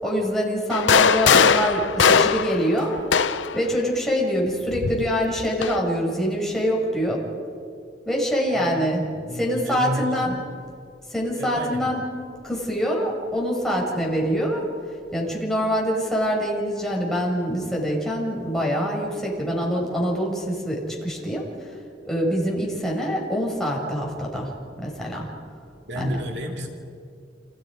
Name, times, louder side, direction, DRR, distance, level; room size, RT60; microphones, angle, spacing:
voice 1, 0.0-3.0 3.5-7.2 8.0-9.0 9.3-10.5 11.1-12.0 12.4-14.6 15.1-21.5 22.0-24.5 24.8-25.3 25.9-26.2, equal, ahead, -3 dB, 6.3 m, -25 dB
sound 1, 0.7-3.6 4.7-5.8, left 6 dB, 85° left, 0.7 m, -20 dB
voice 2, 9.1-10.3 11.4-11.9 25.9-26.7, equal, 65° right, 1 dB, 2.8 m, -31 dB
30.0 x 28.5 x 5.2 m, 2.3 s
head